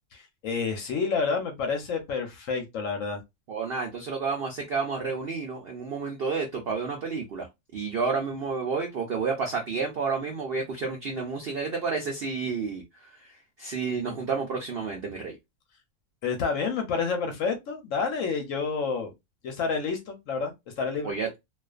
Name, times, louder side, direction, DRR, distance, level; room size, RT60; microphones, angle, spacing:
voice 1, 0.1-3.2 16.2-19.1 19.4-21.1, left 5 dB, 65° left, 0.9 m, -29 dB
voice 2, 3.5-7.5 7.7-15.4 21.0-21.3, right 4 dB, 70° right, 0.5 m, -30 dB
2.4 x 2.3 x 2.3 m
omnidirectional pair, 1.6 m